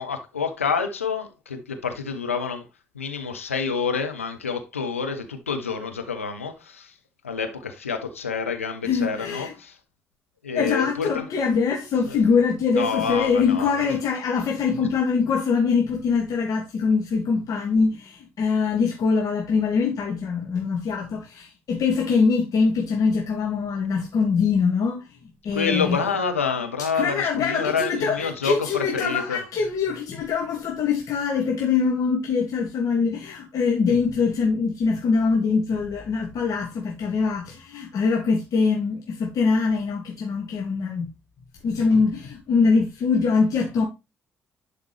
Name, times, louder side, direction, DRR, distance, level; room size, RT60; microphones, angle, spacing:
voice 1, 0.0-2.7 2.9-6.9 7.2-9.8 10.4-11.3 12.1-12.2 12.7-13.7 25.5-29.4, left 5 dB, 90° left, 0.8 m, -28 dB
voice 2, 8.8-9.5 10.5-25.1 25.4-26.0 26.8-41.1 41.6-43.9, left 5 dB, 55° left, 2.1 m, -23 dB
11.0 x 5.1 x 3.2 m
figure-of-eight pair, 45°, 7 cm